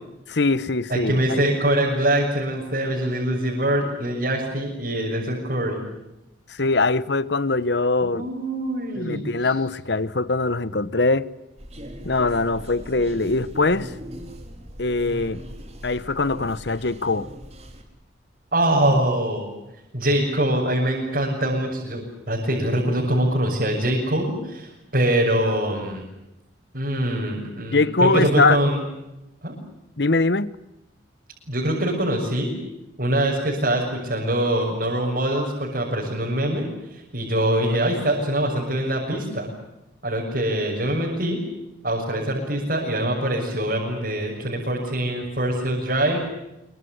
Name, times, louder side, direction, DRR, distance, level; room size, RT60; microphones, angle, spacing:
voice 1, 0.3-1.4 6.5-8.3 9.0-11.3 12.0-13.9 14.8-15.4 15.8-17.3 27.7-28.6 30.0-30.5, left 3 dB, 65° left, 1.1 m, -22 dB
voice 2, 0.9-5.8 8.0-9.5 18.5-19.5 19.9-26.0 26.7-28.8 29.4-29.5 31.5-32.5 33.0-39.5 40.0-41.4 41.8-46.2, right 1 dB, 50° right, 6.8 m, -23 dB
sound 1, 11.6-17.8, equal, 35° right, 4.2 m, -39 dB
26.5 x 24.5 x 8.1 m
head